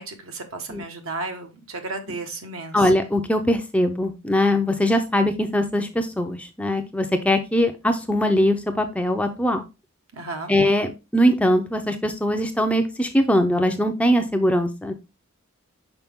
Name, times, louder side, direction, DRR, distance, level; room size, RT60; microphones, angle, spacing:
voice 1, 0.0-2.8 10.1-10.5, right 3 dB, 70° right, 5 dB, 1.3 m, -33 dB
voice 2, 2.7-9.6 10.5-14.9, equal, 5° left, 6 dB, 0.5 m, -21 dB
6.0 x 4.7 x 3.5 m, 0.27 s
head